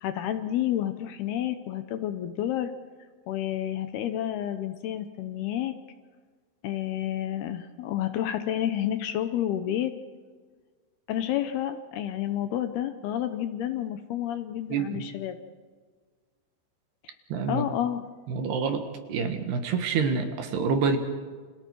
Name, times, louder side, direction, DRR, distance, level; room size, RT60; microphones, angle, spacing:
voice 1, 0.0-2.7 3.3-5.7 6.6-9.9 11.1-15.4 17.5-18.0, left 11 dB, 75° left, 9 dB, 2.5 m, -30 dB
voice 2, 14.7-15.0 17.3-17.6 18.3-18.8 19.1-21.0, right 5 dB, 65° right, 6 dB, 3.4 m, -27 dB
29.5 x 27.0 x 4.7 m, 1.5 s
omnidirectional pair, 5.3 m